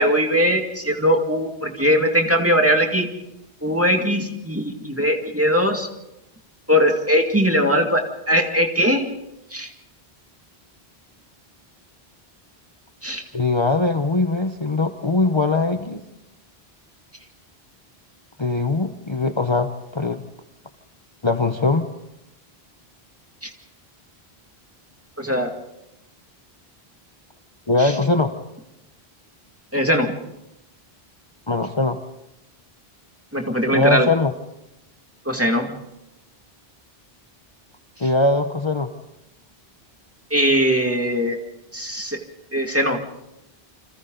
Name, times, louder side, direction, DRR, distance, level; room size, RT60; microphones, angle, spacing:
voice 1, 0.0-3.1 3.6-5.9 6.7-9.1 9.5-9.7 13.0-13.2 23.4-23.5 25.2-25.6 27.8-27.9 29.7-30.1 33.3-34.1 35.3-35.7 40.3-41.4 41.7-42.2 42.5-43.0, equal, 15° right, 2 dB, 2.2 m, -20 dB
voice 2, 13.3-16.0 18.4-20.2 21.2-21.9 27.7-28.3 31.5-32.0 33.7-34.3 38.0-38.9, left 3 dB, 30° left, 6 dB, 1.0 m, -21 dB
28.5 x 26.0 x 4.0 m, 0.88 s
omnidirectional pair, 1.0 m